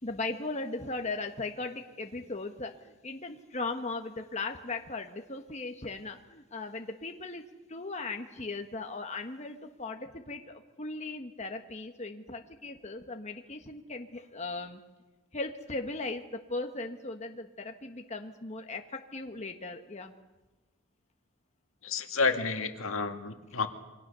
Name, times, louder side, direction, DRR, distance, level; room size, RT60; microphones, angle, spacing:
voice 1, 0.0-7.4 7.7-14.8 15.3-20.1, left 3 dB, 30° left, 4 dB, 1.4 m, -38 dB
voice 2, 21.8-23.7, left 4 dB, 70° left, 6 dB, 2.1 m, -30 dB
28.0 x 24.0 x 6.9 m, 1.2 s
head